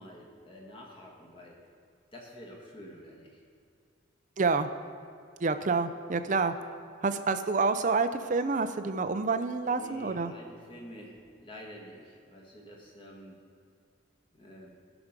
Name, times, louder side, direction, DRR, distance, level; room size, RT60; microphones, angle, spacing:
voice 1, 0.0-1.6 2.1-3.4 9.7-13.4 14.4-14.7, equal, 25° left, -1 dB, 1.7 m, -48 dB
voice 2, 4.4-4.7 5.4-6.5 7.0-10.3, right 4 dB, 40° right, 10 dB, 0.5 m, -28 dB
16.5 x 6.0 x 5.2 m, 2.4 s
head